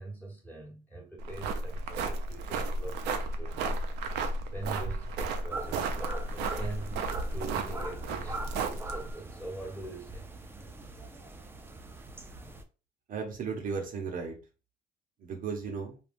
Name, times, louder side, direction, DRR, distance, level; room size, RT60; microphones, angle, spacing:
voice 1, 0.0-4.2 4.5-6.0 6.4-10.3, right 2 dB, 10° left, 1.1 m, -43 dB
sound 1, 1.2-9.1, right 3 dB, 85° right, 0.5 m, -33 dB
Fiestas en Güimil, 5.5-12.6, right 3 dB, 15° right, 0.4 m, -42 dB
voice 2, 13.1-14.4 15.2-16.0, right 5 dB, 55° right, 0.7 m, -35 dB
3.5 x 2.3 x 2.5 m
cardioid pair, 110°, 17 cm